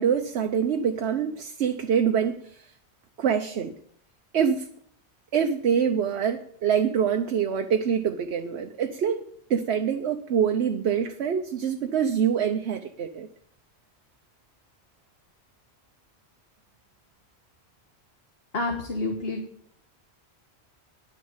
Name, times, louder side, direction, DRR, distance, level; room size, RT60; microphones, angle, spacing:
voice 1, 0.0-2.7 3.2-3.7 4.3-4.7 5.3-13.3, right 7 dB, 75° right, 5 dB, 1.1 m, -25 dB
voice 2, 18.5-19.4, left 2 dB, 60° left, 3 dB, 1.7 m, -28 dB
10.5 x 9.4 x 7.3 m, 0.62 s
omnidirectional pair, 1.1 m